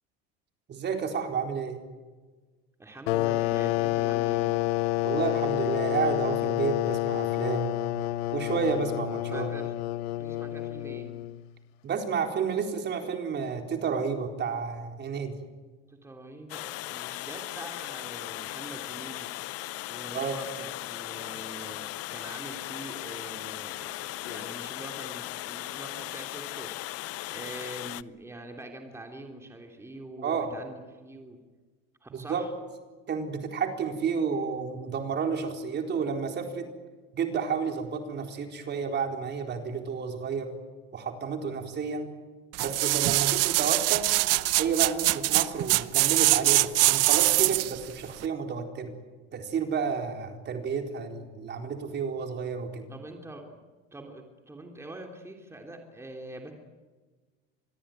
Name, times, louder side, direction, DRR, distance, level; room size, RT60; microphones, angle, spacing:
voice 1, 0.7-1.8 5.0-7.8 8.3-9.5 11.8-15.4 20.1-20.4 30.2-30.5 32.1-32.4 33.1-36.7 37.1-40.5 40.9-42.1 42.6-44.1 44.6-48.9 49.3-52.9, right 6 dB, 35° right, 4 dB, 4.2 m, -31 dB
voice 2, 2.8-4.5 9.3-9.7 10.1-11.2 15.9-19.3 19.8-21.8 22.1-27.0 27.3-31.4 32.0-32.5 52.9-53.6 53.9-56.5, right 1 dB, 10° right, 2 dB, 3.3 m, -44 dB
sound 1, 3.1-11.5, left 17 dB, 90° left, 0.9 m, -29 dB
Water, 16.5-28.0, left 18 dB, 55° left, 0.8 m, -37 dB
sound 2, 42.5-47.8 48.2-48.3, right 19 dB, 55° right, 0.9 m, -23 dB
26.0 x 21.5 x 9.2 m, 1.3 s
supercardioid pair, 125°, 30 cm